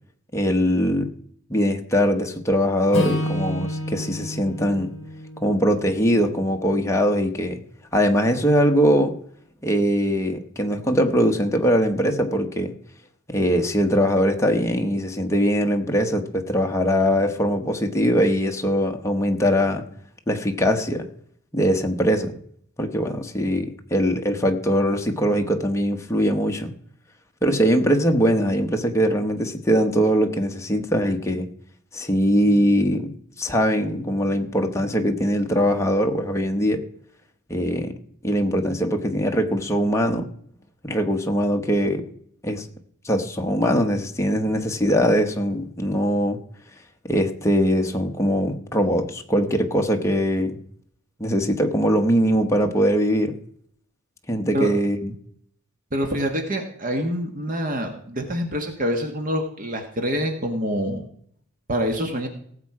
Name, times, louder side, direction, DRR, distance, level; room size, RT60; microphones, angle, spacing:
voice 1, 0.3-1.1 1.5-4.9 5.4-7.6 7.9-9.2 9.6-12.7 13.3-19.9 20.3-21.1 21.5-22.4 22.8-26.7 27.4-31.5 31.9-36.8 37.5-37.9 38.2-40.3 40.8-42.0 42.4-42.7 43.0-46.4 47.0-50.6 51.2-53.3 54.3-55.1, equal, 15° left, 3 dB, 1.0 m, -21 dB
Acoustic guitar / Strum, 2.9-7.2, equal, 30° left, 3.9 m, -30 dB
voice 2, 55.9-61.0 61.7-62.3, equal, 40° right, 5 dB, 1.4 m, -26 dB
18.0 x 7.5 x 4.8 m, 0.65 s
head